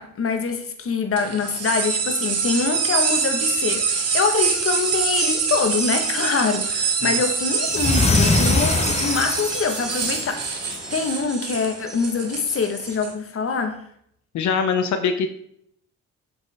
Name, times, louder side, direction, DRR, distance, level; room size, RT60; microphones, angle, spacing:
voice 1, 0.0-13.8, left 5 dB, 50° left, 6 dB, 1.4 m, -25 dB
sound 1, 1.2-13.1, right 5 dB, 55° right, 1.8 m, -25 dB
sound 2, 3.7-13.0, equal, ahead, 0.6 m, -38 dB
sound 3, 7.6-10.9, left 3 dB, 20° left, 1.2 m, -23 dB
voice 2, 14.3-15.3, left 6 dB, 70° left, 8 dB, 0.8 m, -22 dB
7.7 x 6.8 x 3.6 m, 0.69 s
cardioid pair, 90°, 30 cm